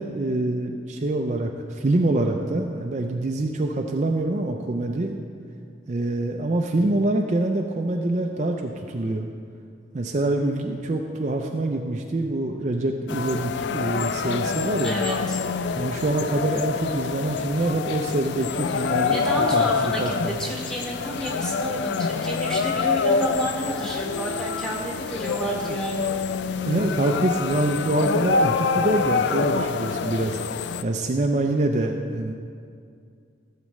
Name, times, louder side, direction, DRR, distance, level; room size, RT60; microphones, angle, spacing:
voice 1, 0.0-5.1 5.9-9.3 9.9-15.0 15.8-20.4 25.7-25.8 26.7-30.4 30.8-32.3, right 2 dB, 40° right, 2 dB, 0.4 m, -25 dB
sound 1, 13.1-30.8, left 5 dB, 65° left, 0.3 m, -26 dB
voice 2, 14.8-15.4 18.7-26.1, right 1 dB, 5° left, -3 dB, 1.3 m, -31 dB
15.0 x 7.5 x 3.1 m, 2.3 s
head